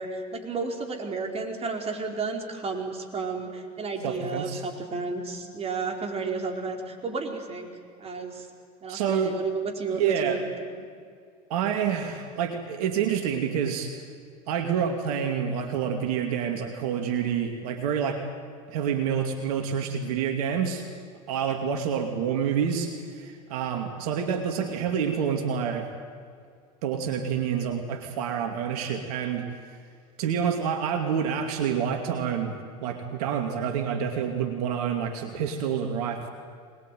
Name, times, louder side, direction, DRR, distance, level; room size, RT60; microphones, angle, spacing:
voice 1, 0.0-7.7 8.0-8.5 8.8-10.7 21.6-21.7, right 4 dB, 30° right, 3 dB, 4.7 m, -32 dB
voice 2, 4.0-4.6 8.9-9.4 10.0-10.4 11.5-13.9 14.5-18.2 18.7-20.9 21.3-25.9 26.8-29.5 30.2-36.3, right 7 dB, 75° right, 5 dB, 2.6 m, -28 dB
24.5 x 21.0 x 9.4 m, 2.2 s
hypercardioid pair, 95°, 20 cm